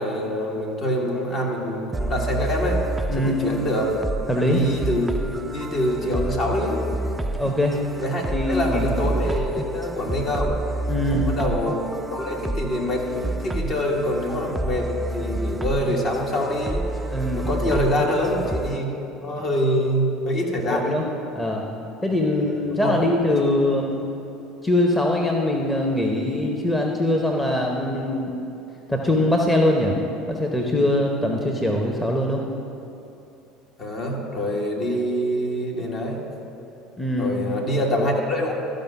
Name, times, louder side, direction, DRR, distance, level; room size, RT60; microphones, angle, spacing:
voice 1, 0.0-2.8 3.2-3.9 4.5-5.1 5.5-6.8 8.0-10.6 11.1-16.9 17.3-18.9 19.2-21.0 22.4-23.1 33.8-36.2 37.2-38.5, equal, 45° left, -1 dB, 1.7 m, -25 dB
sound 1, 1.9-18.8, right 2 dB, 15° right, 0.3 m, -29 dB
voice 2, 3.1-3.4 4.3-4.6 7.3-7.7 8.3-8.9 10.9-11.2 17.1-17.5 20.7-21.1 21.3-21.6 22.0-24.0 24.6-28.3 28.9-30.0 30.3-32.4 37.0-37.4, left 1 dB, 10° left, 0 dB, 0.9 m, -22 dB
13.0 x 5.3 x 5.8 m, 2.8 s
figure-of-eight pair, 65°, 0 cm